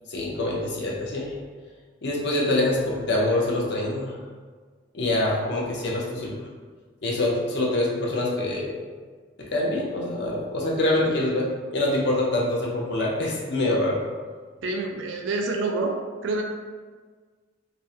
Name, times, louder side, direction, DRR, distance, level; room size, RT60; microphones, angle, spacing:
voice 1, 0.1-1.4 2.0-4.2 4.9-6.4 7.0-8.8 9.4-14.0, left 1 dB, 60° left, -3 dB, 0.5 m, -25 dB
voice 2, 14.6-16.4, right 3 dB, 75° right, 2 dB, 0.3 m, -27 dB
2.4 x 2.0 x 2.6 m, 1.5 s
head